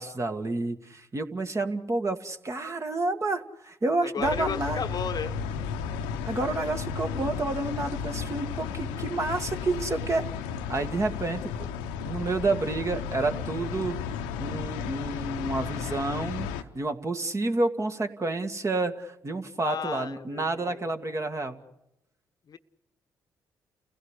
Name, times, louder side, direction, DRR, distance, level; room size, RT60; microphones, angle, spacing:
voice 1, 0.0-4.8 6.3-10.2 10.7-11.7 12.1-14.0 14.4-16.5 16.7-21.6, right 2 dB, 35° right, 6 dB, 2.0 m, -29 dB
voice 2, 4.0-5.4 19.6-20.9 22.5-22.6, left 7 dB, 50° left, 11 dB, 1.0 m, -34 dB
sound 1, 4.2-16.6, left 7 dB, 85° left, 0.9 m, -34 dB
29.5 x 16.5 x 8.2 m, 0.88 s
hypercardioid pair, 45°, 8 cm